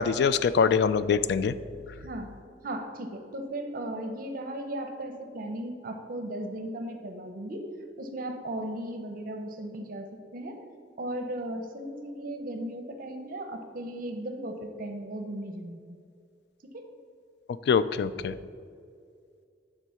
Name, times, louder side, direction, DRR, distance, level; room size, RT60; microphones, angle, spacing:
voice 1, 0.0-1.5 17.7-18.3, left 6 dB, 65° left, 15 dB, 0.3 m, -23 dB
voice 2, 2.0-2.3 2.6-7.7 8.0-10.6 11.0-16.0 16.7-16.8, right 1 dB, 50° right, 5 dB, 0.7 m, -36 dB
9.1 x 3.8 x 6.9 m, 2.3 s
head